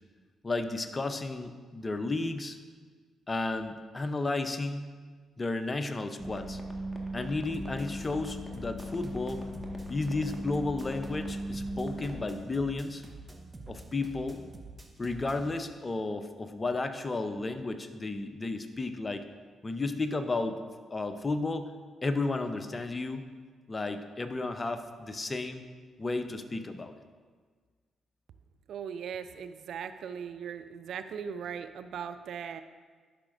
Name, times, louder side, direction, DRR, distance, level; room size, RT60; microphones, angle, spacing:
voice 1, 0.4-2.6 3.3-4.9 5.4-6.6 7.1-9.4 9.9-13.0 13.7-14.4 15.0-19.3 19.6-20.6 20.9-21.7 22.0-23.3 23.7-25.7 26.0-26.9, left 3 dB, 35° left, 9 dB, 0.7 m, -33 dB
sound 1, 6.2-12.2, equal, 5° left, 1.6 m, -38 dB
sound 2, 7.5-15.5, right 3 dB, 30° right, 1.0 m, -48 dB
voice 2, 28.7-32.6, right 7 dB, 70° right, 10 dB, 0.3 m, -39 dB
12.5 x 5.8 x 2.5 m, 1.5 s
hypercardioid pair, 40°, 0 cm